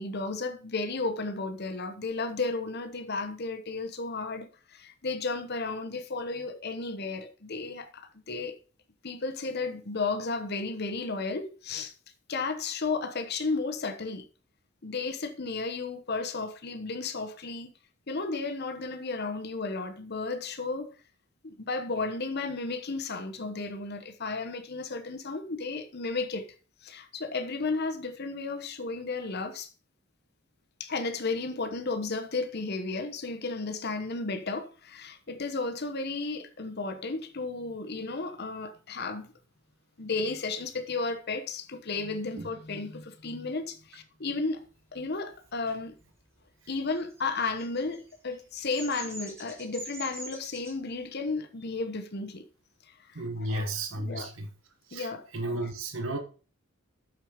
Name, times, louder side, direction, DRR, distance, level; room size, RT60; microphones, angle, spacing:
voice 1, 0.0-8.6 9.0-11.9 12.3-14.2 14.8-17.7 18.1-21.0 21.4-26.5 26.8-29.7 30.8-39.3 40.0-44.7 44.9-45.9 46.7-52.5 52.9-53.7 54.0-54.3 54.9-55.7, left 3 dB, 50° left, 1.0 m, -33 dB
Bird vocalization bird call bird song, 47.0-50.7, right 1 dB, 10° right, 2.9 m, -43 dB
voice 2, 53.1-54.5 54.9-56.2, right 1 dB, 65° right, 1.3 m, -33 dB
6.5 x 6.3 x 4.9 m
head